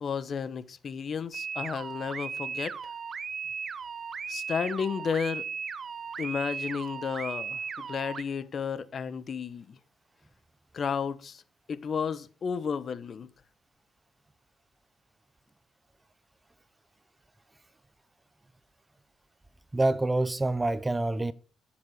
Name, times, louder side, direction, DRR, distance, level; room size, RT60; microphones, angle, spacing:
voice 1, 0.0-2.7 4.3-5.5 6.2-9.8 10.7-11.4 11.7-13.3, left 6 dB, 50° left, 1.0 m, -32 dB
sound 1, 1.3-8.2, right 6 dB, 45° right, 0.9 m, -37 dB
voice 2, 19.7-21.3, right 2 dB, 15° right, 0.7 m, -26 dB
14.5 x 7.5 x 6.4 m
cardioid pair, 90°, 0 cm